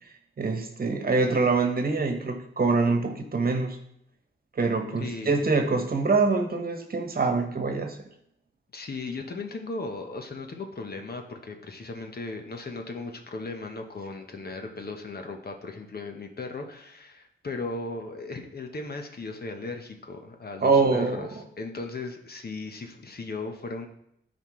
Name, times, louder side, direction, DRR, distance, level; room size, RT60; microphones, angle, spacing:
voice 1, 0.4-3.8 4.5-8.0 20.6-21.4, right 4 dB, 45° right, 5 dB, 1.2 m, -24 dB
voice 2, 5.0-5.5 8.7-23.9, left 3 dB, 50° left, 4 dB, 1.1 m, -37 dB
12.0 x 4.4 x 3.2 m, 0.73 s
cardioid pair, 65°, 21 cm